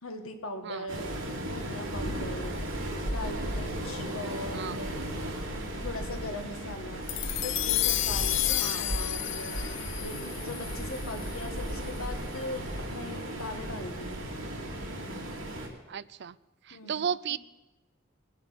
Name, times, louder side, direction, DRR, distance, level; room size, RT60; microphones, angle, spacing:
voice 1, 0.0-1.0 1.5-2.6 3.1-5.0 5.8-7.1 7.4-9.6 10.0-10.2 10.4-14.2 16.7-17.4, left 2 dB, 85° left, 5 dB, 1.8 m, -40 dB
Waves surf, 0.9-15.7, right 1 dB, 70° right, 3.3 m, -35 dB
sound 1, 7.1-11.6, left 16 dB, 60° left, 0.4 m, -31 dB
voice 2, 8.6-9.1 15.9-16.3 16.7-17.4, right 7 dB, 55° right, 17 dB, 0.4 m, -34 dB
21.0 x 11.0 x 5.8 m, 1.1 s
head